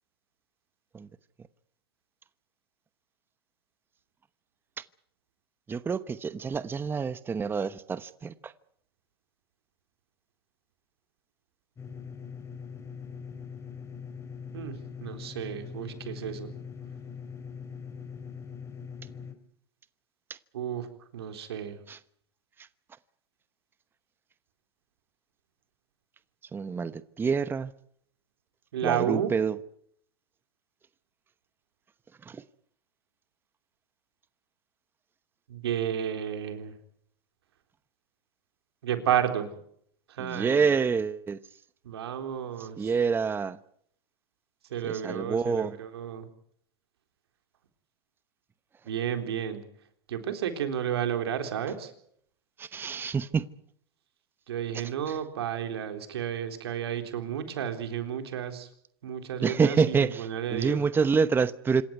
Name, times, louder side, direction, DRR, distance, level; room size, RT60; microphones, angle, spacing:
voice 1, 5.7-8.5 21.9-22.0 26.5-27.7 28.8-29.6 32.3-32.4 40.2-41.4 42.6-43.6 44.8-45.8 52.6-53.4 54.7-55.2 59.4-61.8, right 5 dB, 15° right, 1.0 m, -27 dB
sound 1, 11.8-19.3, left 6 dB, 20° left, 3.3 m, -42 dB
voice 2, 14.5-16.5 20.5-20.9 21.1-21.8 28.7-29.3 35.5-36.7 38.8-39.5 40.1-40.7 41.8-42.9 44.7-46.3 48.9-49.6 50.1-51.9 54.5-58.7 59.0-60.8, right 9 dB, 85° right, 3.8 m, -32 dB
27.0 x 14.0 x 9.5 m
hypercardioid pair, 115°, 13 cm